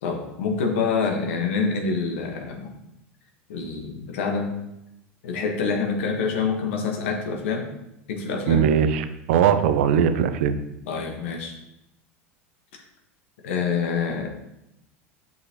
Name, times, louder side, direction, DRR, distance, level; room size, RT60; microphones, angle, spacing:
voice 1, 0.0-2.8 3.5-4.5 5.2-7.7 8.1-8.6 10.9-11.5 13.4-14.3, left 5 dB, 70° left, 3 dB, 1.5 m, -26 dB
voice 2, 8.5-10.6, right 8 dB, 65° right, 11 dB, 0.7 m, -20 dB
7.2 x 6.3 x 3.1 m, 0.86 s
hypercardioid pair, 80°, 7 cm